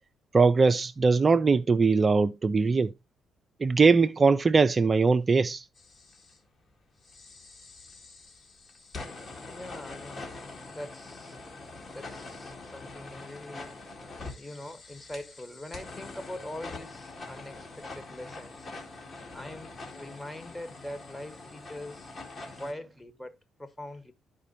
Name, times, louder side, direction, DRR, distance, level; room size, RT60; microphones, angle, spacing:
voice 1, 0.3-2.9 3.6-5.7, right 4 dB, 35° right, 0.4 m, -21 dB
sound 1, 5.8-6.4 7.0-22.7, left 3 dB, 45° left, 1.9 m, -44 dB
voice 2, 9.5-11.4 11.9-13.7 14.3-18.7 19.3-22.1 22.6-24.1, left 1 dB, 15° left, 1.3 m, -43 dB
11.0 x 5.0 x 2.7 m
hypercardioid pair, 45°, 0 cm